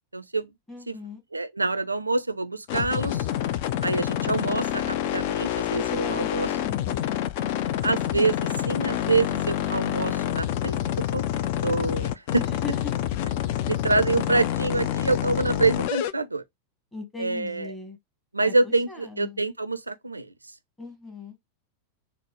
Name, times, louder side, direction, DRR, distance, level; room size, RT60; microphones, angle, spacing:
voice 1, 0.1-0.5 0.9-1.0 1.3-3.3 3.8-6.5 7.8-10.8 11.1-11.3 11.6-12.5 13.7-16.4 17.2-17.7 18.3-20.3, right 3 dB, 80° right, 0.4 m, -26 dB
voice 2, 0.7-1.2 5.7-7.0 12.4-13.1 16.9-18.0 18.4-19.4 20.8-21.3, left 4 dB, 10° left, 1.4 m, -39 dB
Voice Crusher demo, 2.7-16.1, left 11 dB, 50° left, 0.3 m, -27 dB
3.9 x 2.0 x 3.0 m
figure-of-eight pair, 90°, 0 cm